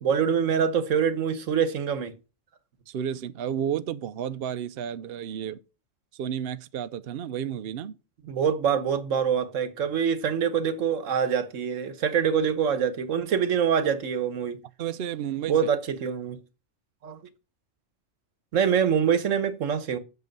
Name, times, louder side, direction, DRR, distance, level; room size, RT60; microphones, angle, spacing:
voice 1, 0.0-2.1 8.2-14.6 15.5-16.4 17.0-17.2 18.5-20.0, right 7 dB, 80° right, 1.3 m, -25 dB
voice 2, 2.9-5.6 6.1-8.0 14.8-15.6, right 9 dB, 60° right, 0.7 m, -32 dB
8.3 x 6.5 x 5.3 m
omnidirectional pair, 1.3 m